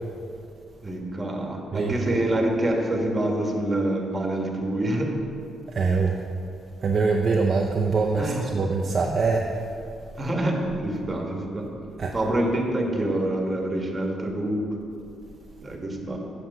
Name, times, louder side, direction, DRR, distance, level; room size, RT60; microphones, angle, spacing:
voice 1, 0.8-5.1 8.2-8.5 10.2-11.7 12.1-14.7 15.6-16.2, right 1 dB, 20° right, 1 dB, 1.5 m, -26 dB
voice 2, 5.7-6.2 6.8-9.4 12.0-12.1, right 4 dB, 45° right, 0 dB, 0.6 m, -23 dB
7.7 x 6.8 x 5.5 m, 2.6 s
cardioid pair, 90°, 0 cm